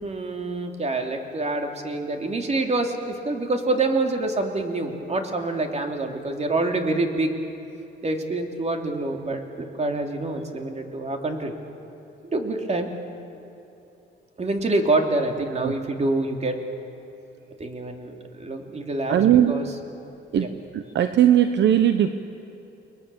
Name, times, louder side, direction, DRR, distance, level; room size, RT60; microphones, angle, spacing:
voice 1, 0.0-7.3 8.0-11.5 12.2-12.9 14.4-16.6 17.6-19.7 20.4-20.5, right 2 dB, 35° right, 4 dB, 3.1 m, -26 dB
voice 2, 19.1-19.5 20.3-20.5 20.7-22.1, right 10 dB, 65° right, 9 dB, 1.0 m, -18 dB
30.0 x 21.5 x 7.1 m, 2.9 s
cardioid pair, 90°, 20 cm